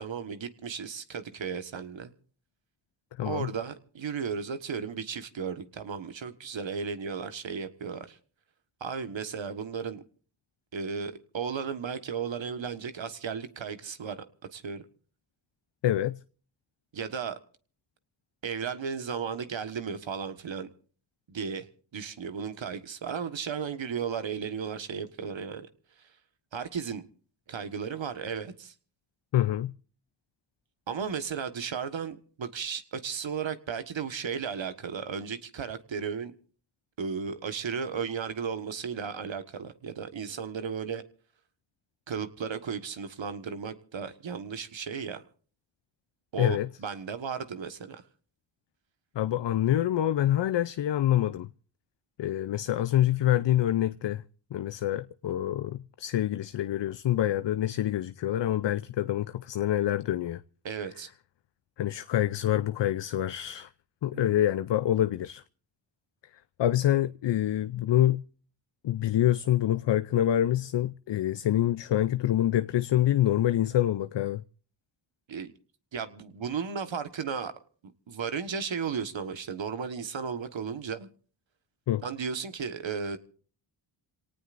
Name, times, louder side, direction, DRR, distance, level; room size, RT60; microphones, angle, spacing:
voice 1, 0.0-2.1 3.2-8.2 8.8-10.0 10.7-14.2 14.5-14.8 16.9-17.4 18.4-20.7 21.3-21.7 21.9-25.7 26.0-26.1 26.5-27.0 27.5-28.7 30.9-36.3 37.0-41.0 42.1-45.2 46.3-48.0 60.6-61.1 64.1-64.4 75.3-75.5 75.9-77.5 78.1-81.1 82.0-83.2, right 6 dB, 65° right, 1.5 m, -35 dB
voice 2, 3.1-3.5 15.8-16.2 29.3-29.7 46.4-46.7 49.1-51.5 52.2-54.2 54.5-60.4 61.8-63.7 64.0-65.4 66.6-68.2 68.8-74.4 81.9-82.0, left 12 dB, 60° left, 0.6 m, -26 dB
27.5 x 18.5 x 2.6 m
cardioid pair, 50°, 49 cm